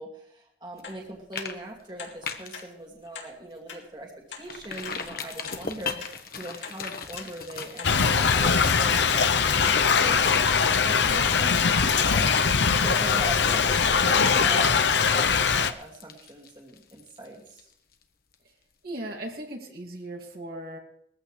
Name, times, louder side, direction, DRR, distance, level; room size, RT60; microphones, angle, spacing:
voice 1, 0.0-12.5 12.7-17.7, right 1 dB, 25° right, -1 dB, 2.4 m, -41 dB
sound 1, 0.8-1.0 1.4-1.5 2.0-2.1 2.5-2.7 3.1-3.3 3.7-3.8 4.3-4.4 4.8-5.0 5.5-5.6 6.0-6.1 6.6-6.8 7.1-7.3 7.8-7.9 8.3-8.5 8.9-9.1 9.5-9.6 10.1-10.2, left 6 dB, 90° left, 2.6 m, -41 dB
sound 2, 0.8-1.0 1.3-1.5 1.8-2.6 3.1-3.2 3.6-3.7 4.5-18.0 18.3-18.4, left 5 dB, 55° left, 1.3 m, -39 dB
Thunder / Rain, 7.8-15.7, left 6 dB, 75° left, 0.8 m, -21 dB
voice 2, 18.8-20.8, right 1 dB, 55° right, 0 dB, 2.5 m, -37 dB
20.5 x 14.5 x 3.3 m, 0.74 s
head